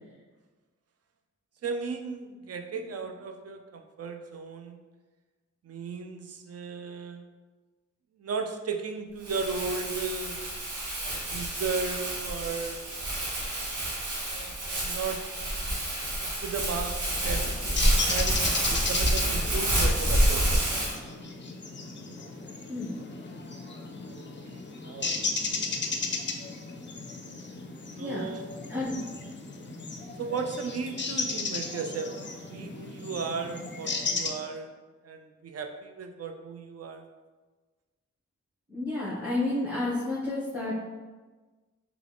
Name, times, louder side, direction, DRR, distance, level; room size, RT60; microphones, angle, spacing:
voice 1, 1.6-4.8 5.6-7.3 8.2-10.4 11.1-12.8 14.3-15.6 16.2-17.5 18.1-20.7 24.1-25.4 28.0-28.5 30.2-34.7 35.0-37.0, right 5 dB, 55° right, 5 dB, 0.4 m, -35 dB
Crumpling crinkling, 9.2-20.9, right 1 dB, 75° right, 0.9 m, -28 dB
sound 1, 17.1-34.3, left 4 dB, 40° left, 0.4 m, -35 dB
voice 2, 38.7-40.8, left 2 dB, 5° right, -11 dB, 1.2 m, -30 dB
3.6 x 2.4 x 3.4 m, 1.3 s
cardioid pair, 60°, 30 cm